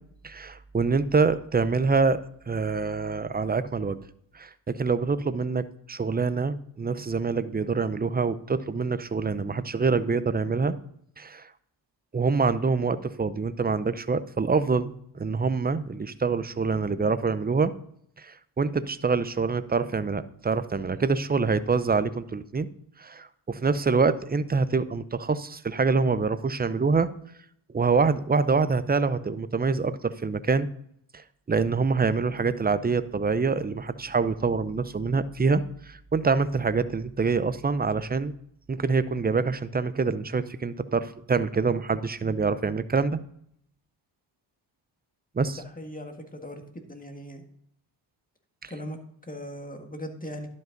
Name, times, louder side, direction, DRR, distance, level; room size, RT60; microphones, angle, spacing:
voice 1, 0.2-2.2 2.5-4.0 4.3-10.7 11.2-11.5 12.1-17.7 18.2-22.7 23.0-27.1 27.7-30.7 31.1-38.3 38.7-43.2 45.3-45.6, right 4 dB, 20° right, 14 dB, 0.6 m, -25 dB
voice 2, 45.8-46.6 46.9-47.4 48.7-50.5, equal, 15° left, 4 dB, 1.7 m, -39 dB
11.5 x 5.4 x 3.9 m, 0.68 s
cardioid pair, 65°, 50 cm